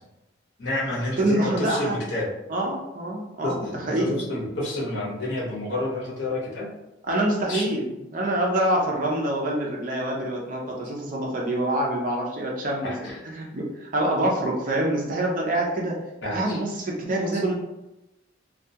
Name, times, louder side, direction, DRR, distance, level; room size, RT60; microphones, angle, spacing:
voice 1, 0.6-2.3 3.4-6.7 7.5-7.6 12.8-13.2 16.2-16.6, left 1 dB, 60° left, -5 dB, 0.8 m, -29 dB
voice 2, 1.2-2.0 2.5-4.2 7.1-16.0 16.3-17.5, right 1 dB, 45° right, -2 dB, 0.5 m, -26 dB
2.3 x 2.2 x 2.7 m, 0.96 s
head